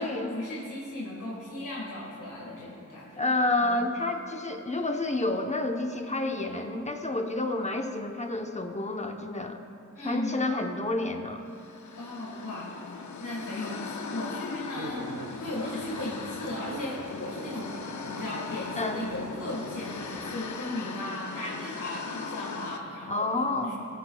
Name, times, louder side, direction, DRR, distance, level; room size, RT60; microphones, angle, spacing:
voice 1, 0.0-3.8 9.9-10.5 11.9-17.7 18.1-23.7, left 1 dB, 85° left, -5 dB, 1.7 m, -37 dB
voice 2, 3.2-9.6 10.0-11.5 18.8-19.0 23.1-23.7, left 2 dB, 20° left, 3 dB, 0.9 m, -29 dB
sound 1, 11.5-22.8, left 5 dB, 70° left, 0.6 m, -39 dB
sound 2, 14.8-20.4, right 2 dB, 80° right, 1.0 m, -43 dB
21.0 x 9.3 x 2.3 m, 2.7 s
wide cardioid pair, 90°, 31 cm